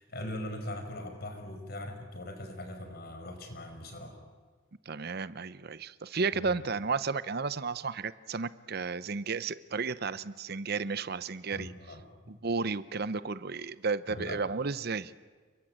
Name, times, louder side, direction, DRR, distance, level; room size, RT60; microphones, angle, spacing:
voice 1, 0.0-4.2 6.3-6.7 11.5-12.4 14.1-14.4, left 1 dB, 55° left, 6 dB, 5.6 m, -41 dB
voice 2, 4.9-11.7 12.3-15.1, right 4 dB, 55° right, 16 dB, 0.8 m, -33 dB
30.0 x 22.0 x 8.9 m, 1.5 s
head